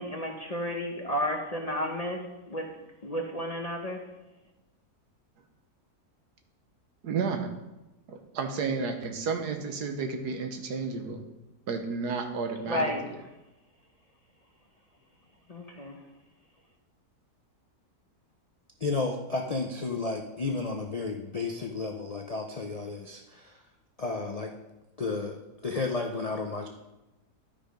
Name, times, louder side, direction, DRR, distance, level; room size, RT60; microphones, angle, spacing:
voice 1, 0.0-2.7 3.0-4.1 12.7-13.0 15.5-16.0, equal, 30° left, 2 dB, 0.7 m, -32 dB
voice 2, 7.0-7.5 8.1-11.2 11.7-12.9, right 5 dB, 85° right, 5 dB, 1.6 m, -32 dB
voice 3, 18.8-23.6 24.0-24.5 25.0-25.4 25.6-26.7, left 3 dB, 55° left, 2 dB, 0.4 m, -32 dB
12.0 x 5.1 x 5.1 m, 1.0 s
omnidirectional pair, 1.7 m